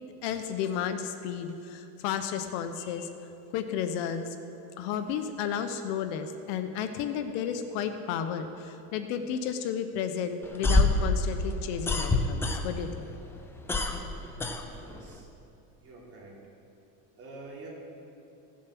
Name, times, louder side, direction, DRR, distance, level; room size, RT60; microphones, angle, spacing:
voice 1, 0.2-3.1 3.5-4.3 4.8-13.1, left 8 dB, 60° left, 8 dB, 0.9 m, -32 dB
sound 1, 10.4-13.0 13.3-15.2, left 2 dB, 5° left, 0.3 m, -26 dB
voice 2, 14.8-15.3 15.8-16.4 17.2-17.7, right 2 dB, 30° right, -4 dB, 3.3 m, -46 dB
16.0 x 7.4 x 5.9 m, 2.9 s
supercardioid pair, 140°, 44 cm